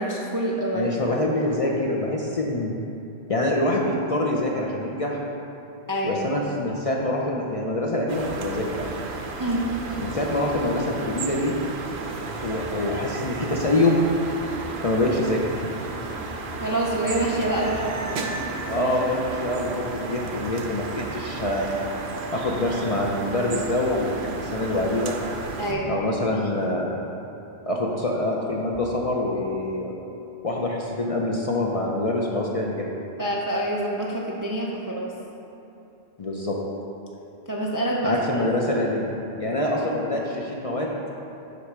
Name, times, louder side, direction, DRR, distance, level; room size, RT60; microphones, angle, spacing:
voice 1, 0.0-0.9 5.9-6.2 9.4-9.8 16.6-18.3 25.6-25.9 33.2-35.1 37.5-38.4, right 1 dB, 30° right, -3 dB, 0.4 m, -26 dB
voice 2, 0.7-2.7 3.3-5.2 6.0-8.9 10.0-11.5 12.4-14.0 14.8-15.7 18.7-21.7 22.3-25.1 25.7-27.0 27.7-30.0 30.4-32.9 36.2-36.6 38.0-41.0, left 1 dB, 45° left, -2 dB, 0.5 m, -25 dB
sound 1, 8.1-25.7, right 3 dB, 75° right, 0.9 m, -33 dB
8.1 x 3.2 x 5.9 m, 2.9 s
omnidirectional pair, 1.1 m